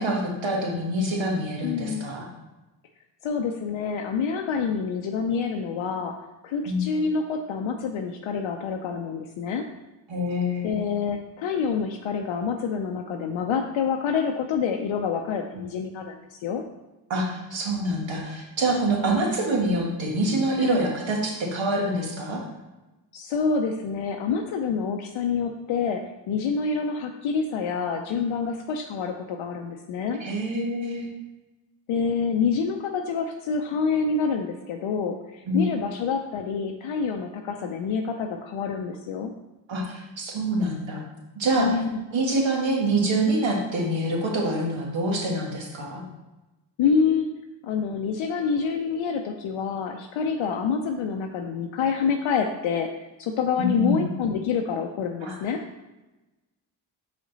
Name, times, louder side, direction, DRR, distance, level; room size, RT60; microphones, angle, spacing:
voice 1, 0.0-2.3 6.7-6.8 10.1-10.8 17.1-22.4 30.2-31.1 35.5-35.6 39.7-41.0 41.4-41.8 42.1-46.0 53.6-54.1 55.2-55.3, right 1 dB, 65° right, -1 dB, 1.8 m, -26 dB
voice 2, 1.6-2.1 3.2-6.1 6.4-9.6 10.6-16.2 16.4-16.6 20.6-20.9 23.1-26.0 26.3-30.2 31.9-39.3 41.6-42.0 46.8-47.3 47.6-52.9 53.2-55.6, left 5 dB, 75° left, 3 dB, 0.7 m, -27 dB
5.1 x 5.0 x 4.0 m, 1.1 s
supercardioid pair, 50°, 49 cm